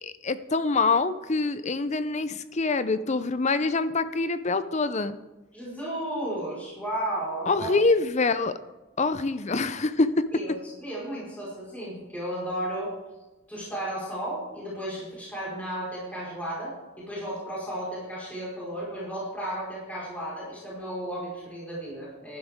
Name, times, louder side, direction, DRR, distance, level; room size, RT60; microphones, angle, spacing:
voice 1, 0.0-5.2 7.5-8.6 9.0-10.1, left 3 dB, 35° left, 13 dB, 0.6 m, -25 dB
voice 2, 5.5-7.7 10.3-12.9 13.5-22.4, right 1 dB, 5° left, -7 dB, 4.8 m, -34 dB
15.0 x 11.5 x 3.6 m, 1.1 s
head